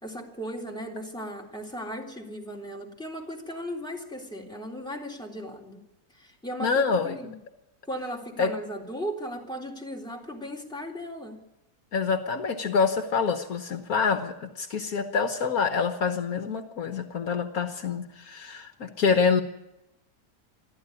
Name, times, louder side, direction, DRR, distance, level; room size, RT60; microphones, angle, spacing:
voice 1, 0.0-5.8 6.2-7.3 7.9-11.4, equal, 5° left, -2 dB, 3.4 m, -37 dB
voice 2, 6.6-7.3 8.4-8.5 11.9-19.4, left 5 dB, 65° left, 7 dB, 1.6 m, -26 dB
23.5 x 14.0 x 9.9 m, 0.92 s
omnidirectional pair, 1.7 m